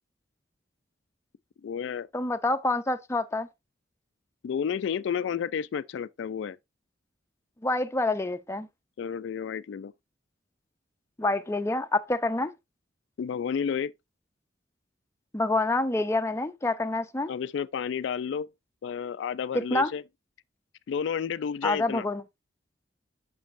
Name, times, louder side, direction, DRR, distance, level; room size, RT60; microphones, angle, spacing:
voice 1, 1.6-2.1 4.4-6.6 9.0-9.9 13.2-13.9 17.3-18.5 18.8-20.0 20.9-22.1, left 7 dB, 75° left, 0.3 m, -31 dB
voice 2, 2.1-3.5 7.6-8.7 11.2-12.5 15.3-17.3 19.5-19.9 21.6-22.2, left 2 dB, 15° left, 0.5 m, -27 dB
7.2 x 6.0 x 2.5 m
head